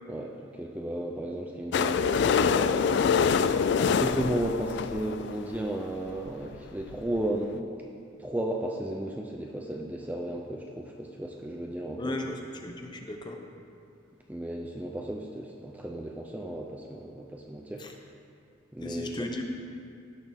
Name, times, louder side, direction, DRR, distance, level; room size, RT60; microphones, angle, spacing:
voice 1, 0.1-7.9 8.2-12.1 14.3-17.8 18.7-19.3, right 1 dB, 10° right, 0 dB, 0.4 m, -34 dB
sound 1, 1.7-5.6 6.3-6.4 6.5-6.6 6.8-6.9 7.3-7.4, left 6 dB, 60° left, 0.3 m, -25 dB
voice 2, 12.0-13.4 17.8-18.0 18.8-19.4, left 1 dB, 20° left, 3 dB, 0.8 m, -36 dB
16.5 x 6.6 x 3.5 m, 2.6 s
head